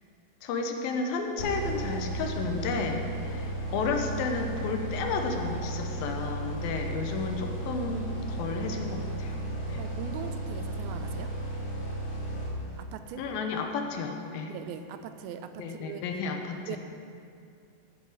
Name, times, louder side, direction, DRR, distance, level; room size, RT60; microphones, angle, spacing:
voice 1, 0.4-9.4 9.7-9.8 13.2-14.5 15.6-16.8, left 4 dB, 80° left, 4 dB, 2.6 m, -32 dB
sound 1, 1.4-13.0, right 1 dB, 50° left, 3.2 m, -34 dB
voice 2, 9.8-11.3 12.8-13.3 14.5-16.0 16.7-16.8, right 9 dB, 85° right, 9 dB, 2.5 m, -40 dB
13.5 x 8.5 x 4.8 m, 2.4 s
omnidirectional pair, 4.3 m